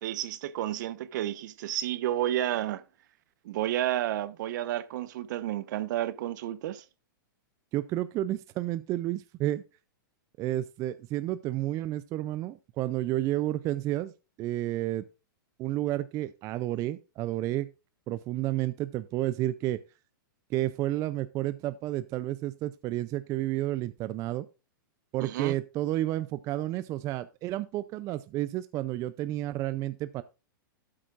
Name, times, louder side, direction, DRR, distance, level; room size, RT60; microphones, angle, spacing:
voice 1, 0.0-2.8 3.4-6.8 25.2-25.5, right 13 dB, 55° right, 1.0 m, -31 dB
voice 2, 7.7-9.6 10.4-14.1 14.4-15.0 15.6-17.7 18.1-19.8 20.5-24.5 25.1-30.2, right 15 dB, 30° right, 0.5 m, -31 dB
12.5 x 8.6 x 2.5 m
hypercardioid pair, 145°, 12 cm